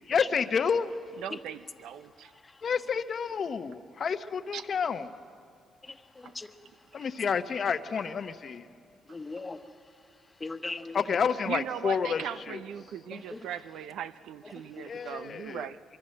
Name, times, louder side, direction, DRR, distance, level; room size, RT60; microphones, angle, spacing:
voice 1, 0.1-0.9 2.6-5.1 6.9-8.7 10.9-12.2 12.5-12.6 14.9-15.7, left 6 dB, 50° left, 0.9 m, -29 dB
voice 2, 1.2-2.3 4.5-4.6 6.2-6.3 11.5-15.8, right 9 dB, 80° right, 0.7 m, -39 dB
voice 3, 5.8-6.6 6.9-7.1 9.1-9.6 10.4-11.1 13.1-13.4 14.7-14.9, left 3 dB, 20° left, 1.3 m, -39 dB
24.0 x 23.5 x 7.7 m
cardioid pair, 90°, 0 cm